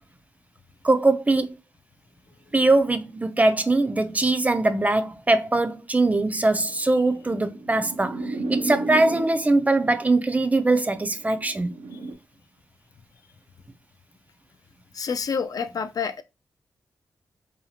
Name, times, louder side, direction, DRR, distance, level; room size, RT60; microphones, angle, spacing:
voice 1, 0.8-1.6 2.5-8.2 8.5-11.7, right 2 dB, 20° right, 0.4 m, -21 dB
sound 1, 6.6-9.7 10.6-12.1, right 2 dB, 85° right, 0.5 m, -32 dB
voice 2, 14.9-16.2, left 6 dB, 60° left, 0.4 m, -28 dB
2.6 x 2.3 x 2.7 m
cardioid pair, 60°, 7 cm